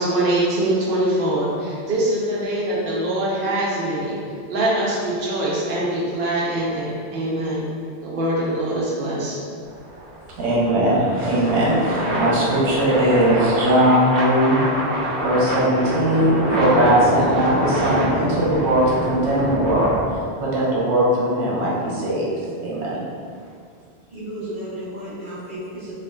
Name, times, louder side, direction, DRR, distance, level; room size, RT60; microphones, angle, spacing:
voice 1, 0.0-4.2 4.5-7.6 8.0-9.4, right 1 dB, 60° right, -6 dB, 0.8 m, -23 dB
sound 1, 9.7-20.1, equal, 85° left, 1.0 m, -25 dB
voice 2, 10.4-14.6 15.2-22.3 22.6-23.0, right 1 dB, 90° right, -6 dB, 1.0 m, -19 dB
voice 3, 24.1-25.9, right 1 dB, 35° right, -17 dB, 1.0 m, -33 dB
3.5 x 2.1 x 2.2 m, 2.2 s
omnidirectional pair, 1.1 m